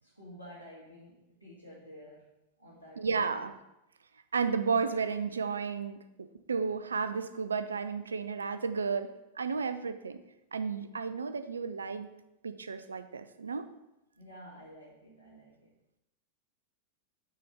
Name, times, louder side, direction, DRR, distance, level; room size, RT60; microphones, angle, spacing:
voice 1, 0.0-2.3 2.6-3.4 14.1-15.7, equal, 90° right, -9 dB, 1.6 m, -51 dB
voice 2, 3.0-3.5 4.3-10.2 10.5-12.1 12.4-13.7, right 5 dB, 75° right, 10 dB, 0.4 m, -33 dB
5.6 x 4.1 x 4.8 m, 0.91 s
figure-of-eight pair, 90°, 0 cm